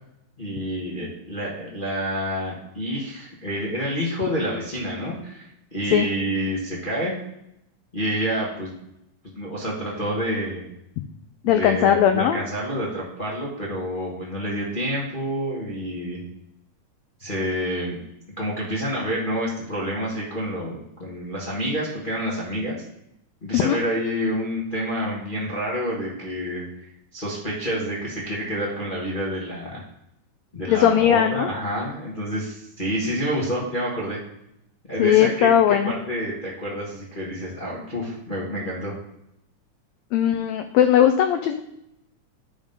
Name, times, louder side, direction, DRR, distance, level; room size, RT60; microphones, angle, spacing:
voice 1, 0.4-7.1 7.9-8.7 9.3-10.6 11.5-16.2 17.2-18.0 18.4-22.8 23.4-26.7 27.1-29.8 30.5-34.2 34.9-38.9, equal, 40° left, -4 dB, 0.6 m, -28 dB
voice 2, 11.4-12.4 23.5-23.8 30.7-31.5 35.0-35.9 40.1-41.6, left 10 dB, 80° left, 8 dB, 1.6 m, -18 dB
9.9 x 3.6 x 5.4 m, 0.79 s
omnidirectional pair, 3.6 m